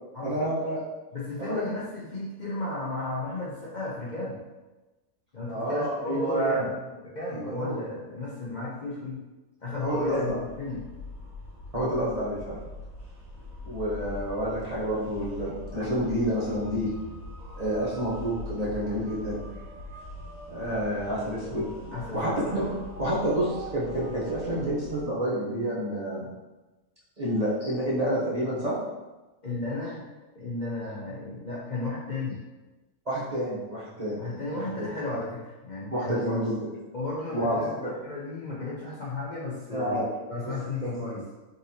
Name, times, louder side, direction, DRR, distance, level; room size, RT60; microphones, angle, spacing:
voice 1, 0.2-0.8 1.4-1.6 5.5-6.7 7.3-7.8 9.8-10.4 11.7-12.6 13.6-16.9 17.6-19.4 20.5-21.7 22.1-22.7 23.0-26.3 27.2-28.8 33.1-34.2 35.9-36.6 37.3-37.9 39.7-40.1 40.4-40.5 40.8-40.9, right 1 dB, 35° right, -8 dB, 0.8 m, -29 dB
voice 2, 1.1-4.4 5.3-6.7 7.1-9.2 9.6-10.8 21.3-21.5 21.9-22.4 29.4-30.0 30.3-32.4 34.1-36.4 36.9-37.8 38.0-41.2, left 2 dB, 40° left, -6 dB, 0.7 m, -34 dB
sound 1, 9.9-25.0, left 1 dB, 75° right, 1.6 m, -42 dB
3.9 x 3.8 x 2.8 m, 1.1 s
omnidirectional pair, 1.5 m